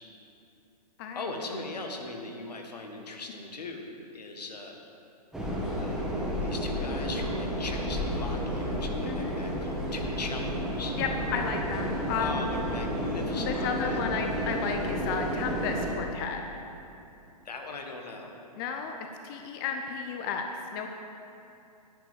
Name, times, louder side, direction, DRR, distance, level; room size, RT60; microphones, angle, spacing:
voice 1, 1.1-3.9 4.1-4.8 5.8-6.1 6.4-11.0 12.2-14.1 17.4-18.4, left 3 dB, 80° left, 3 dB, 1.5 m, -39 dB
sound 1, 5.3-15.9, equal, ahead, 1.6 m, -31 dB
voice 2, 9.0-9.4 11.0-12.6 13.4-16.4 18.6-18.9 19.2-20.9, left 6 dB, 35° left, 4 dB, 0.7 m, -33 dB
10.0 x 5.2 x 7.9 m, 2.7 s
hypercardioid pair, 130°, 21 cm